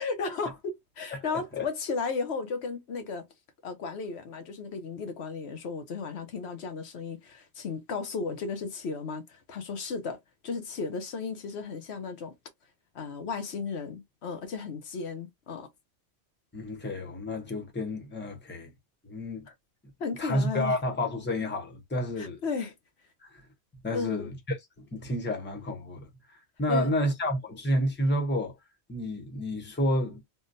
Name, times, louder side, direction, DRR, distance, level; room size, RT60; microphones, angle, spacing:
voice 1, 0.0-3.2 3.6-12.4 12.9-15.7 19.5-19.6 20.0-20.8 22.2-22.7 23.9-24.3 26.7-26.9, left 4 dB, 75° left, 1.0 m, -34 dB
voice 2, 1.1-1.7 16.5-18.7 19.0-19.5 20.2-22.4 23.2-23.4 23.8-28.6 28.9-30.2, left 1 dB, 10° left, 0.8 m, -30 dB
3.7 x 2.1 x 2.5 m
omnidirectional pair, 1.1 m